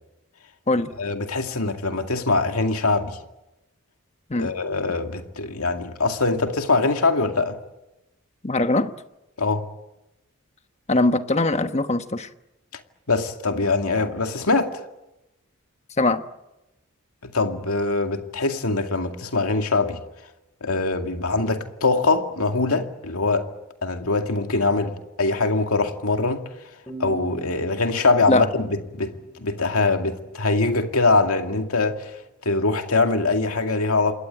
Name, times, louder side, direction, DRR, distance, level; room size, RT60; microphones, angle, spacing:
voice 1, 1.0-3.2 4.4-7.6 9.4-9.7 13.1-14.7 17.2-20.0 20.6-23.5 23.8-24.9 25.2-26.4 27.0-32.1 32.5-34.1, left 3 dB, 85° left, 2.2 m, -23 dB
voice 2, 8.4-8.9 10.9-12.3 16.0-16.2 28.3-28.5, left 2 dB, 30° left, 1.1 m, -21 dB
sound 1, 26.9-30.3, right 2 dB, 15° left, 5.5 m, -42 dB
28.0 x 21.0 x 9.1 m
head